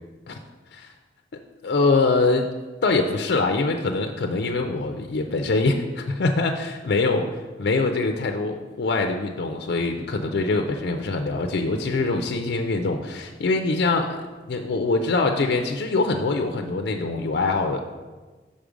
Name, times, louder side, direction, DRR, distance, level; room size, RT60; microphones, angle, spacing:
voice 1, 1.6-2.5 2.8-7.3 7.6-14.2 14.5-17.8, left 3 dB, 65° left, 4 dB, 0.4 m, -23 dB
5.3 x 4.9 x 5.1 m, 1.3 s
head